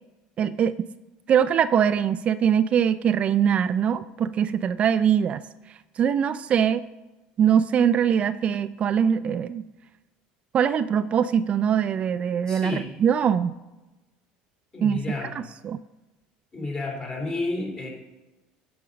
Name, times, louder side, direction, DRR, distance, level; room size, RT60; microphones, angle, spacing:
voice 1, 0.4-0.9 1.3-6.9 7.4-9.6 10.5-13.6 14.8-15.0 15.6-15.8, right 8 dB, 40° right, 13 dB, 0.3 m, -22 dB
voice 2, 12.5-12.9 14.7-15.3 16.5-17.9, left 2 dB, 30° left, 0 dB, 3.1 m, -31 dB
10.5 x 5.2 x 5.1 m, 1.1 s
supercardioid pair, 100°, 3 cm